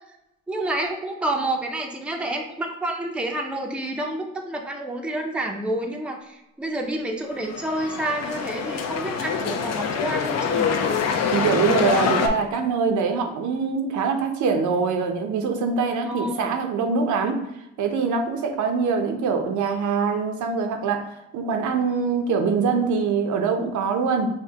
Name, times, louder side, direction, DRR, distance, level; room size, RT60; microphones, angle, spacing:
voice 1, 0.5-10.7 16.1-16.5, right 1 dB, 5° right, 2 dB, 0.4 m, -29 dB
sound 1, 7.3-12.3, left 6 dB, 60° left, 0.5 m, -25 dB
voice 2, 11.3-17.3 17.8-21.1 21.3-24.3, right 5 dB, 75° right, 5 dB, 0.6 m, -23 dB
5.0 x 2.1 x 2.8 m, 0.87 s
cardioid pair, 90°, 30 cm